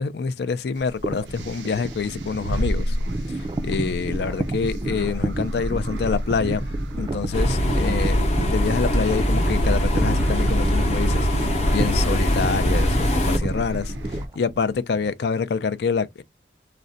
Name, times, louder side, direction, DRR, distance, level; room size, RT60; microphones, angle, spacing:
voice 1, 0.0-3.0 3.3-6.6 7.0-16.2, left 5 dB, 70° left, 0.4 m, -27 dB
sound 1, 0.8-14.3, equal, 85° right, 0.5 m, -30 dB
sound 2, 1.0-15.1, right 2 dB, 25° right, 0.3 m, -32 dB
sound 3, 7.3-13.4, equal, 35° left, 0.7 m, -22 dB
2.4 x 2.1 x 3.8 m
head